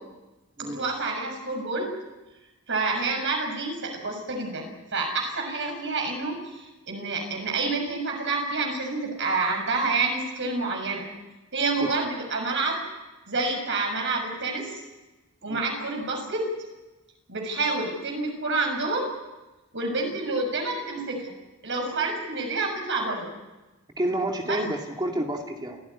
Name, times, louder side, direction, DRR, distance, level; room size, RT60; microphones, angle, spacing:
voice 1, 0.6-1.9 2.7-11.0 11.5-12.8 13.3-14.8 15.4-16.4 17.3-19.1 19.7-21.3 21.6-23.3 24.5-24.6, right 3 dB, 60° right, 2 dB, 6.8 m, -28 dB
voice 2, 24.0-25.8, right 1 dB, 20° right, 1 dB, 2.5 m, -29 dB
28.0 x 15.5 x 9.8 m, 1.1 s
head